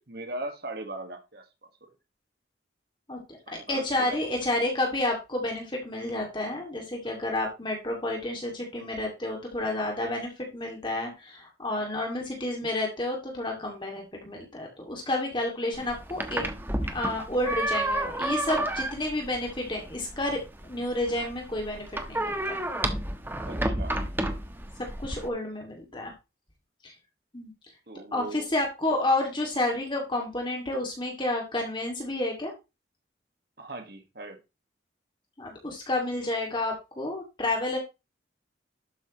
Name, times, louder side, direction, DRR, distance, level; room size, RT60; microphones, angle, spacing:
voice 1, 0.1-1.9 3.5-4.2 7.0-7.2 11.8-11.9 23.5-24.0 27.9-28.5 33.6-34.4, right 2 dB, 55° right, 5 dB, 1.7 m, -39 dB
voice 2, 3.7-16.4 16.9-22.7 25.0-26.1 26.8-26.9 27.3-27.5 28.1-32.5 35.4-37.8, left 1 dB, 25° left, 0 dB, 2.4 m, -30 dB
sound 1, 15.7-25.3, right 1 dB, 10° right, 1.3 m, -31 dB
12.0 x 8.8 x 3.1 m, 0.27 s
head